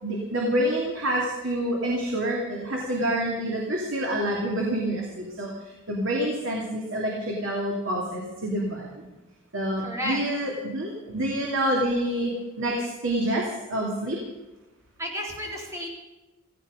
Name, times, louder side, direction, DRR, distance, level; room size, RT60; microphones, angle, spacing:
voice 1, 0.0-5.5 5.9-8.9 9.5-12.3 12.6-14.2, right 1 dB, 60° right, -2 dB, 2.8 m, -27 dB
voice 2, 9.8-10.2 15.0-15.9, equal, 15° right, -2 dB, 3.7 m, -32 dB
16.5 x 16.0 x 5.2 m, 1.1 s
head